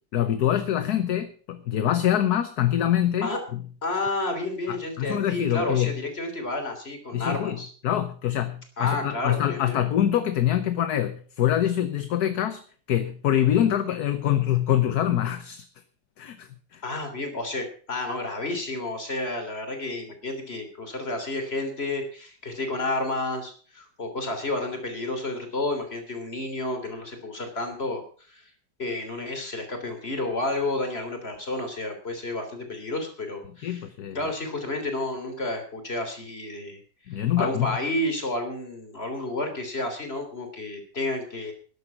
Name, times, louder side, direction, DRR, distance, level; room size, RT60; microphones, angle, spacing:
voice 1, 0.1-3.6 4.7-6.0 7.1-7.6 7.8-12.6 12.9-15.6 16.2-16.8 33.6-34.2 37.1-37.8, left 11 dB, 65° left, 10 dB, 1.4 m, -25 dB
voice 2, 3.8-7.7 8.8-9.8 16.8-28.5 28.8-33.9 34.2-36.8 37.1-41.5, left 2 dB, 35° left, 6 dB, 3.6 m, -31 dB
13.0 x 10.5 x 6.0 m, 0.43 s
omnidirectional pair, 1.9 m